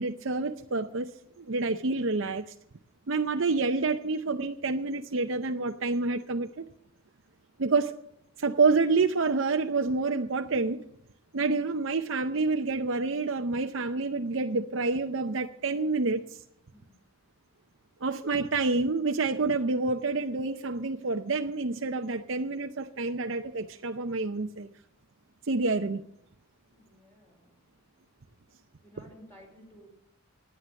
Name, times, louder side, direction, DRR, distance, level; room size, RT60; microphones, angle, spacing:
voice 1, 0.0-2.5 3.1-6.6 7.6-7.9 8.4-10.9 11.3-16.4 18.0-24.7 25.4-26.0, right 3 dB, 65° right, 5 dB, 0.7 m, -28 dB
voice 2, 26.7-27.6 28.8-29.9, equal, 10° left, -2 dB, 4.6 m, -54 dB
17.5 x 9.5 x 7.0 m, 0.72 s
head